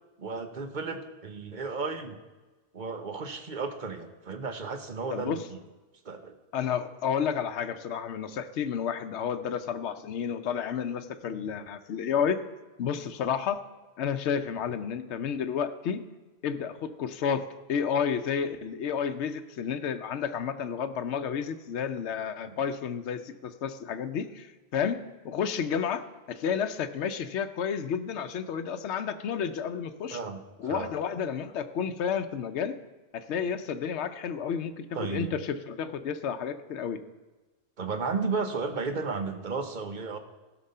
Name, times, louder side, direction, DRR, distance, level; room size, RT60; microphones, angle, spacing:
voice 1, 0.2-2.2 2.7-5.4 6.0-6.3 22.4-22.5 30.1-31.0 34.9-35.3 37.8-40.2, right 4 dB, 45° right, 7 dB, 1.1 m, -33 dB
voice 2, 5.1-5.4 6.5-12.4 12.8-13.6 14.0-16.0 16.4-25.0 25.2-30.2 30.6-32.7 33.1-37.0, left 7 dB, 75° left, 8 dB, 1.0 m, -31 dB
15.5 x 6.1 x 5.5 m, 1.2 s
omnidirectional pair, 1.2 m